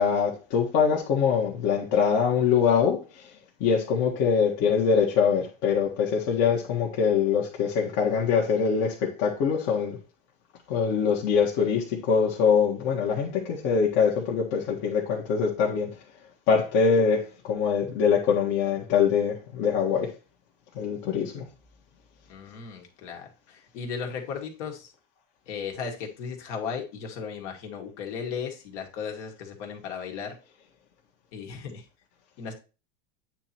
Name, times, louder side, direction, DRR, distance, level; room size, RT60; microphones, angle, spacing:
voice 1, 0.0-3.3 3.6-10.0 10.7-15.9 16.5-20.1 20.7-21.5, left 6 dB, 50° left, 1.5 m, -23 dB
voice 2, 22.3-24.9 25.5-30.3 31.3-31.8 32.4-32.5, left 6 dB, 65° left, 2.0 m, -36 dB
8.7 x 3.1 x 4.4 m
supercardioid pair, 120°, 37 cm